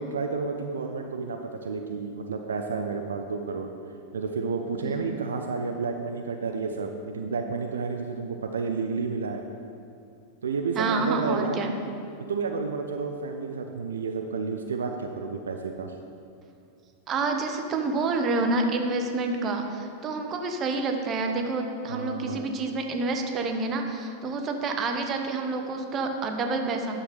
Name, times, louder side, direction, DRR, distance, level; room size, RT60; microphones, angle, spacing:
voice 1, 0.0-3.7 4.1-9.4 10.4-11.6 12.3-15.9 21.9-22.4, right 4 dB, 70° right, 4 dB, 0.5 m, -31 dB
voice 2, 10.7-11.7 17.1-27.0, right 3 dB, 30° right, 4 dB, 1.0 m, -28 dB
9.7 x 6.9 x 4.9 m, 2.4 s
figure-of-eight pair, 90°, 0 cm